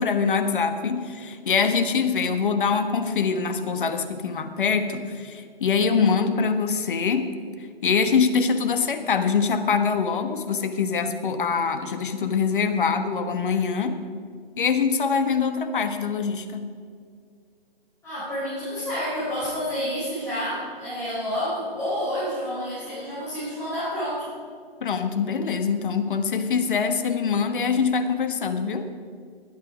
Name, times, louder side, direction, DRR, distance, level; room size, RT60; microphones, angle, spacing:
voice 1, 0.0-7.3 7.8-14.0 14.6-16.6 24.8-28.9, left 5 dB, 60° left, 8 dB, 1.4 m, -24 dB
voice 2, 18.0-24.3, equal, 10° left, -12 dB, 4.5 m, -29 dB
21.0 x 8.9 x 5.1 m, 2.1 s
hypercardioid pair, 155°, 30 cm